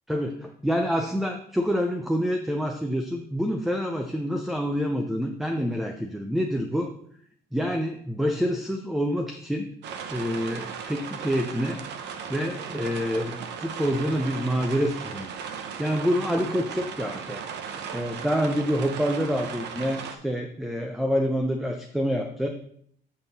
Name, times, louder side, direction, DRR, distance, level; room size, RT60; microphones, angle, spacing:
voice 1, 0.1-6.9 7.5-9.7 10.1-11.8 12.3-15.3 15.8-17.4 17.9-22.5, equal, ahead, 4 dB, 0.5 m, -27 dB
sound 1, 9.8-20.1, right 7 dB, 85° right, 0.8 m, -37 dB
7.3 x 5.8 x 4.1 m, 0.63 s
cardioid pair, 165°, 17 cm